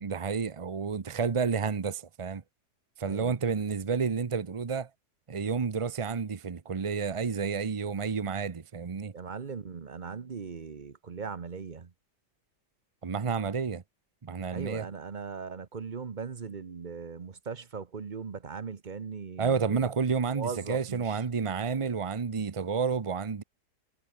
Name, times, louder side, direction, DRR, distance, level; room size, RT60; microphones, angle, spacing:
voice 1, 0.0-2.4 3.0-4.9 5.3-9.1 13.0-13.8 14.2-14.9 19.4-23.4, right 5 dB, 55° right, 0.3 m, -30 dB
voice 2, 3.1-3.4 9.1-11.9 14.5-19.9 20.3-21.2, right 5 dB, 35° right, 0.9 m, -39 dB
omnidirectional pair, 1.8 m